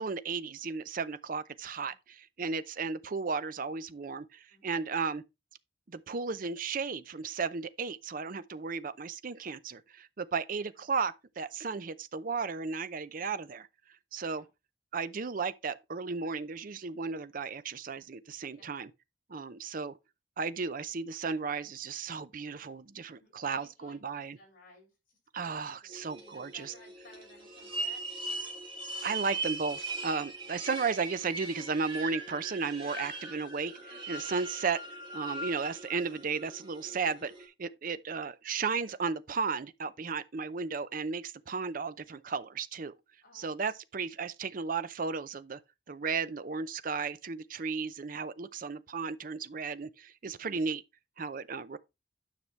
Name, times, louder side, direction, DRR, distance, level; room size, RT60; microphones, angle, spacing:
voice 1, 0.0-1.9 2.4-5.2 5.9-13.7 14.1-14.4 14.9-18.9 19.3-19.9 20.4-24.4 25.3-26.7 29.0-34.8 35.1-42.9 43.3-45.6 45.9-50.8 51.2-51.8, right 5 dB, 50° right, 0.6 m, -34 dB
voice 2, 4.5-4.8 13.2-13.3 14.3-14.5 18.5-18.7 19.6-19.7 23.2-28.1 30.4-30.6 32.8-33.0 36.8-37.0 43.2-43.5 47.6-47.7 50.3-50.5, left 2 dB, 50° left, 5.7 m, -59 dB
sound 1, 25.9-37.4, right 2 dB, 30° right, 3.3 m, -40 dB
9.7 x 6.0 x 3.2 m
head